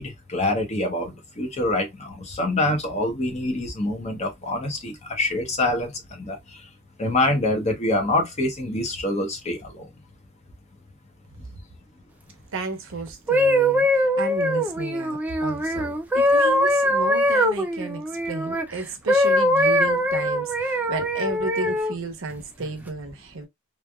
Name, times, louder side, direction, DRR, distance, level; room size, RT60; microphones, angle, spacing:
voice 1, 0.0-5.9 6.2-6.4 7.0-9.9, left 1 dB, 30° left, 0.8 m, -25 dB
voice 2, 12.5-23.5, right 3 dB, 60° right, 0.8 m, -33 dB
sound 1, 13.1-18.7 19.1-22.0 22.6-22.9, equal, 5° right, 0.4 m, -22 dB
3.3 x 2.5 x 2.2 m
head